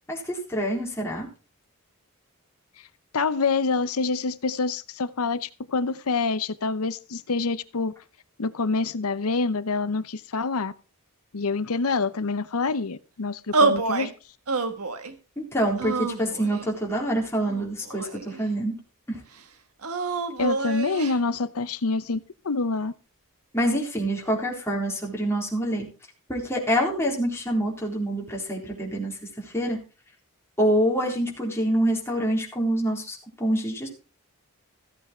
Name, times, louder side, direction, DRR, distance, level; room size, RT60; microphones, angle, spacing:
voice 1, 0.1-1.3 15.4-18.7 19.1-19.2 23.5-25.9 26.3-29.2 29.4-29.8 30.6-33.9, right 1 dB, 10° left, 4.0 m, -26 dB
voice 2, 3.1-7.9 8.4-10.7 11.3-14.1 20.4-22.9, left 4 dB, 75° left, 0.8 m, -26 dB
sound 1, 13.5-14.1 14.5-15.1 15.8-16.7 17.4-18.4 19.8-21.2, right 3 dB, 80° right, 1.5 m, -27 dB
15.0 x 8.4 x 4.4 m
head